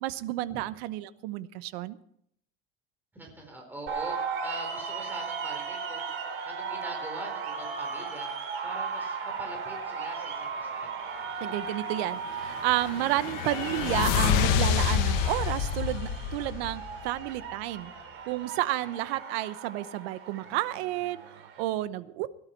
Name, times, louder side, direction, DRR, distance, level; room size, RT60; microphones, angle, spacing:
voice 1, 0.0-2.0 11.4-17.9 18.3-22.3, right 15 dB, 85° right, 14 dB, 1.0 m, -31 dB
voice 2, 3.1-4.2 4.4-6.1 6.4-8.3 8.6-10.9, right 1 dB, 5° right, 0 dB, 4.3 m, -42 dB
sound 1, 3.9-21.6, right 5 dB, 45° right, 3.8 m, -37 dB
sound 2, 12.3-17.2, left 8 dB, 70° left, 1.9 m, -28 dB
17.5 x 12.0 x 4.6 m, 0.70 s
cardioid pair, 150°, 31 cm